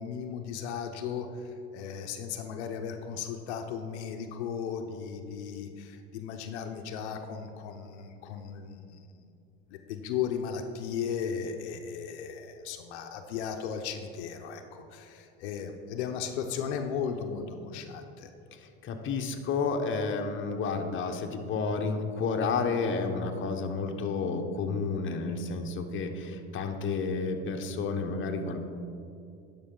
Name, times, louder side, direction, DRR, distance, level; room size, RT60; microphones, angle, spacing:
voice 1, 0.0-9.1 9.7-18.3, left 7 dB, 85° left, 5 dB, 0.7 m, -36 dB
voice 2, 18.8-28.6, left 4 dB, 35° left, 4 dB, 0.9 m, -31 dB
11.0 x 5.4 x 3.8 m, 2.5 s
supercardioid pair, 95°, 33 cm